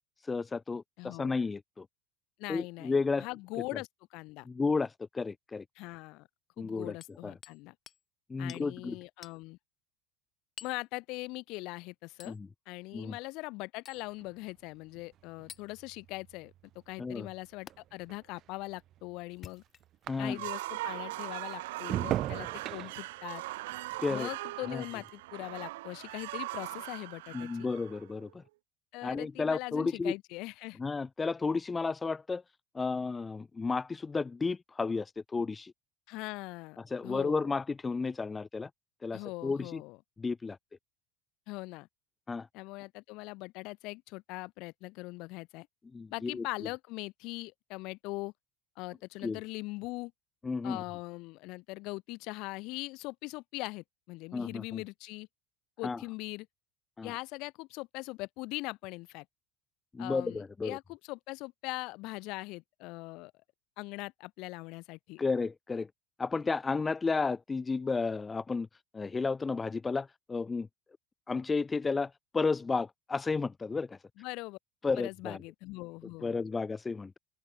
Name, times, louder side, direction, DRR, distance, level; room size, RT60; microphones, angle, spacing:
voice 1, 0.3-1.8 2.5-3.3 4.5-5.6 6.6-6.9 7.2-7.3 8.3-9.0 12.2-12.5 12.9-13.1 17.0-17.3 20.1-20.4 24.0-24.3 24.7-24.8 27.3-28.4 29.0-30.1 30.8-32.4 32.7-35.7 36.9-38.7 39.0-39.8 40.2-40.6 42.3-42.5 45.9-46.4 49.2-49.4 50.4-50.8 54.3-54.8 55.8-56.0 57.0-57.1 59.9-60.8 65.2-65.9 66.2-68.7 68.9-70.7 71.3-74.0 74.8-75.4 76.2-77.2, left 4 dB, 20° left, 1.4 m, -32 dB
voice 2, 1.0-1.4 2.4-4.5 5.8-6.3 6.6-7.7 8.4-9.6 10.6-12.4 12.7-16.5 16.9-19.6 20.2-23.4 24.1-27.7 28.9-30.8 36.1-36.8 37.0-37.5 39.1-40.0 41.5-41.9 42.5-45.7 46.1-48.3 48.8-50.1 50.6-55.3 55.8-56.5 57.0-59.3 60.0-63.3 63.8-65.2 74.2-74.6 75.0-76.4, left 23 dB, 65° left, 7.4 m, -41 dB
Hammer, 7.0-7.6 7.9-8.0 8.5-8.7 9.2-9.4 10.6-10.8 12.2-12.4 13.9-14.1 15.5-15.7 17.7-17.8 19.3-20.1 20.8-21.0 22.2-22.4 23.3-23.5 25.0-25.1, left 8 dB, 35° left, 3.2 m, -50 dB
sound 1, 13.9-20.7 21.1-25.6 25.9-26.4, right 13 dB, 50° right, 1.6 m, -42 dB
sound 2, 20.2-28.3, right 19 dB, 80° right, 2.8 m, -40 dB
open air
supercardioid pair, 100°, 0 cm